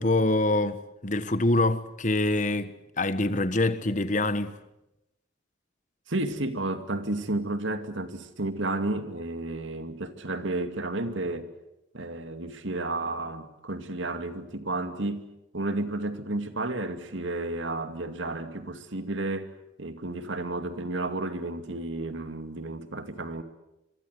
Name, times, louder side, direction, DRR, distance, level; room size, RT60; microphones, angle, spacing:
voice 1, 0.0-4.6, left 2 dB, 40° left, 1.3 m, -25 dB
voice 2, 6.1-11.5 11.9-15.3 15.5-23.4, right 2 dB, 75° right, 2.4 m, -32 dB
26.0 x 23.0 x 8.1 m
head